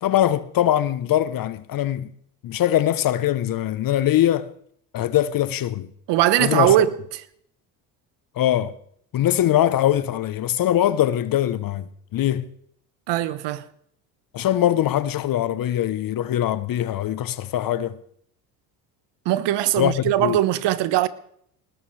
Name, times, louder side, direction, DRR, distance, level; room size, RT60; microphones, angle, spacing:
voice 1, 0.0-2.1 2.4-4.5 4.9-5.9 6.4-6.7 8.4-8.7 9.1-12.5 14.3-18.0 19.8-20.4, left 12 dB, 45° left, 0.9 m, -22 dB
voice 2, 6.1-6.9 13.1-13.6 19.2-21.1, right 13 dB, 60° right, 1.2 m, -20 dB
19.5 x 19.5 x 3.3 m
hypercardioid pair, 75°, 47 cm